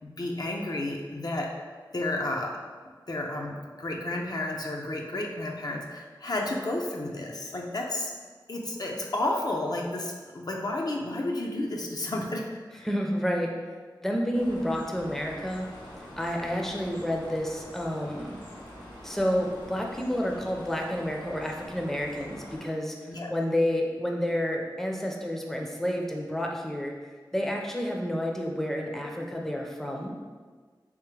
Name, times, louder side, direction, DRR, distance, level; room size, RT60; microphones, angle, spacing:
voice 1, 0.0-1.6 1.9-2.6 3.1-8.1 8.5-12.9 23.1-23.3, left 2 dB, 55° left, 0 dB, 0.5 m, -32 dB
voice 2, 12.8-13.5 14.0-15.7 16.2-18.4 19.0-22.9 23.3-26.9 27.3-30.1, equal, 5° left, 0 dB, 0.5 m, -29 dB
sound 1, 14.3-22.7, equal, 90° left, 1.1 m, -45 dB
3.4 x 3.2 x 3.2 m, 1.5 s
wide cardioid pair, 50°, 8 cm